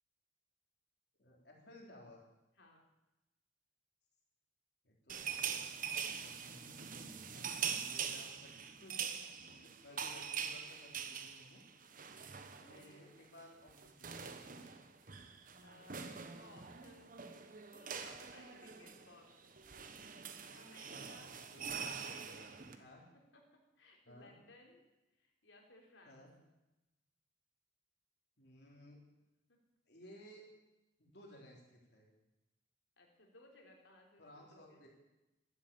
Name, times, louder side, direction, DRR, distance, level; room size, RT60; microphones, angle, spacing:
voice 1, 1.2-2.2 4.8-5.6 6.0-11.6 12.6-14.8 21.5-21.7 22.7-23.1 24.1-24.4 26.0-26.3 28.4-29.0 29.9-30.5 31.0-32.1 34.2-34.9, left 1 dB, 60° left, -1 dB, 3.8 m, -58 dB
sound 1, 5.1-13.0 13.2-13.4 13.7-22.8, right 7 dB, 45° right, 1.2 m, -44 dB
voice 2, 12.5-13.1 15.6-19.6 20.5-21.4 22.0-24.9 25.1-26.2 29.5-29.6 33.0-34.2 34.5-34.8, left 2 dB, 85° left, 0 dB, 3.8 m, -62 dB
13.0 x 11.5 x 8.8 m, 0.99 s
head